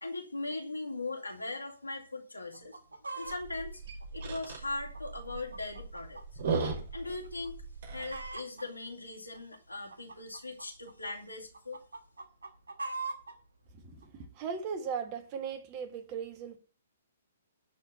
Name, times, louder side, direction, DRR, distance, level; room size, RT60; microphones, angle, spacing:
voice 1, 0.0-2.8 3.1-3.8 4.1-6.4 6.9-7.5 7.9-11.8, left 2 dB, 90° left, 3.1 m, -39 dB
Chicken rooster, 2.5-3.4 4.0-6.3 6.6-6.7 7.2-7.5 7.7-8.6 9.3-11.1 11.5-13.3 14.0-14.1, right 3 dB, 75° right, 1.9 m, -41 dB
sound 1, 3.2-8.3, right 4 dB, 45° right, 5.7 m, -37 dB
voice 2, 13.8-16.6, right 6 dB, 30° right, 1.8 m, -38 dB
11.5 x 4.7 x 8.3 m
figure-of-eight pair, 120°, 0 cm